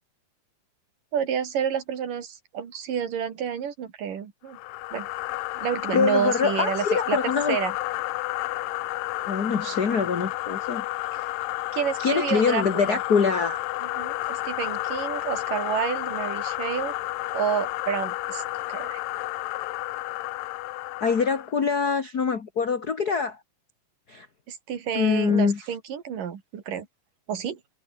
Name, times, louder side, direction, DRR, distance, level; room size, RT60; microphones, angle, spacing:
voice 1, 1.1-4.6 4.9-5.1 5.6-7.2 7.5-7.7 11.7-13.0 13.8-16.9 17.3-18.4 18.7-19.0 24.5-26.9 27.3-27.6, right 8 dB, 70° right, 4.1 m, -29 dB
sound 1, 4.5-21.5, left 18 dB, 85° left, 2.4 m, -31 dB
voice 2, 5.9-7.6 9.2-10.8 12.0-13.6 21.0-23.4 24.1-24.3 24.9-25.6, left 5 dB, 35° left, 1.7 m, -24 dB
omnidirectional pair, 4.0 m